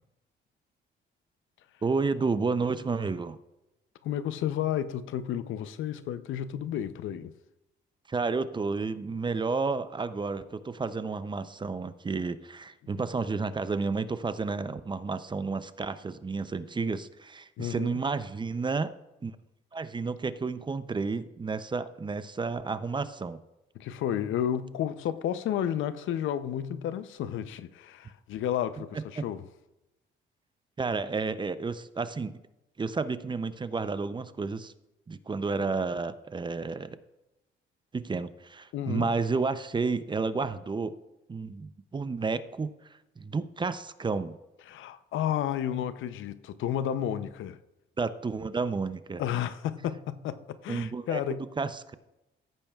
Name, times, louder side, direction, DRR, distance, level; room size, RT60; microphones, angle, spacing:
voice 1, 1.8-3.4 8.1-18.9 19.2-19.3 19.7-23.4 29.2-29.3 30.8-32.4 32.8-34.7 35.1-37.0 37.9-41.0 41.3-42.7 43.2-44.4 48.0-49.2 50.7-51.2 51.6-51.9, right 4 dB, 25° right, 0.5 m, -31 dB
voice 2, 4.0-7.3 17.6-18.0 23.8-29.4 38.7-39.1 44.7-47.6 49.2-51.4, left 10 dB, 80° left, 0.6 m, -32 dB
15.0 x 8.6 x 2.4 m
cardioid pair, 90°, 20 cm